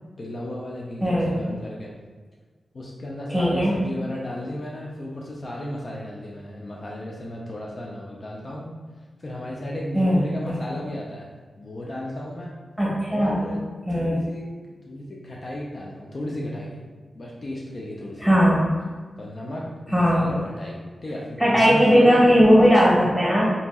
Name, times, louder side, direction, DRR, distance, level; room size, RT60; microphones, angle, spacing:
voice 1, 0.2-1.9 2.7-8.7 9.2-11.3 11.6-12.5 13.1-13.6 14.0-14.5 14.9-16.8 17.2-18.2 19.2-22.2, left 1 dB, 50° left, -3 dB, 0.4 m, -34 dB
voice 2, 1.0-1.3 3.3-3.8 9.9-10.2 10.5-10.6 12.8-13.4 13.9-14.2 18.2-18.7 19.9-20.4 21.4-23.5, equal, 5° left, -6 dB, 1.1 m, -18 dB
2.8 x 2.7 x 2.2 m, 1.4 s
cardioid pair, 65°, 0 cm